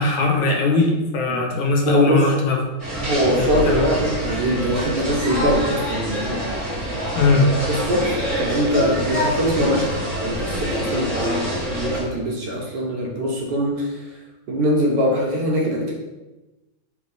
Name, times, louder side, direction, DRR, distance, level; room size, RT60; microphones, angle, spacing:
voice 1, 0.0-2.7 3.4-3.8 7.1-7.5, left 3 dB, 80° left, 1 dB, 1.5 m, -19 dB
voice 2, 1.8-2.3 3.0-7.0 7.7-14.0 14.5-15.9, equal, 65° right, -2 dB, 1.2 m, -23 dB
sound 1, 2.8-12.0, equal, 20° right, 1.0 m, -26 dB
3.5 x 3.2 x 3.9 m, 1.1 s
omnidirectional pair, 2.2 m